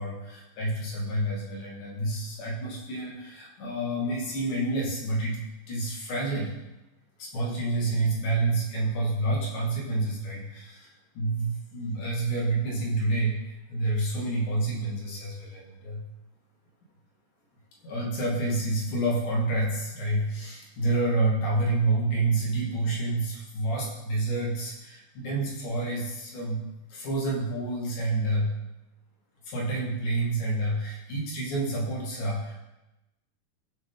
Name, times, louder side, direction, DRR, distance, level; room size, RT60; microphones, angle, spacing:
voice 1, 0.0-5.4 5.7-6.5 7.2-16.0 17.8-26.6 26.9-28.5 29.4-32.5, right 2 dB, 70° left, -3 dB, 3.6 m, -28 dB
14.0 x 7.6 x 3.7 m, 0.99 s
omnidirectional pair, 3.8 m